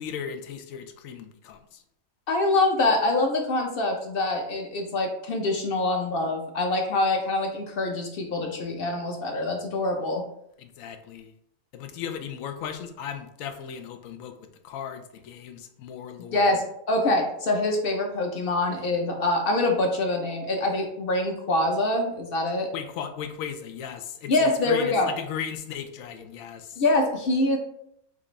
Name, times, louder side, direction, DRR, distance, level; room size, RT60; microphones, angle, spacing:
voice 1, 0.0-1.8 10.6-11.3 11.7-16.6 22.7-26.8, left 8 dB, 85° left, 7 dB, 1.0 m, -37 dB
voice 2, 2.3-10.2 16.3-22.7 24.3-25.1 26.8-27.6, left 2 dB, 50° left, 2 dB, 0.8 m, -25 dB
5.9 x 2.5 x 3.1 m, 0.74 s
omnidirectional pair, 1.4 m